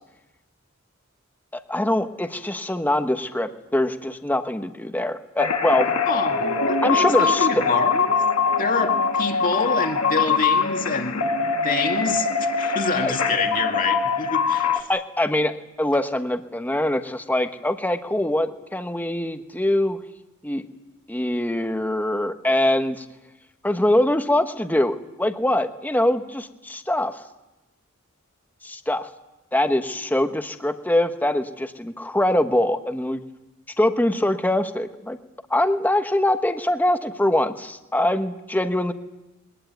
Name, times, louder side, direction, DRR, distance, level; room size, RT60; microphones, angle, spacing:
voice 1, 1.5-5.9 6.8-7.5 13.0-13.1 14.9-20.0 20.4-20.7 21.1-23.0 23.6-27.2 28.6-29.1 29.5-33.2 33.8-35.2 35.5-38.9, left 1 dB, 10° left, 1.2 m, -23 dB
sound 1, 5.4-14.8, left 5 dB, 85° left, 2.0 m, -23 dB
voice 2, 6.1-8.1 8.6-11.3 11.6-14.9, left 4 dB, 40° left, 2.1 m, -27 dB
21.5 x 20.0 x 9.3 m
head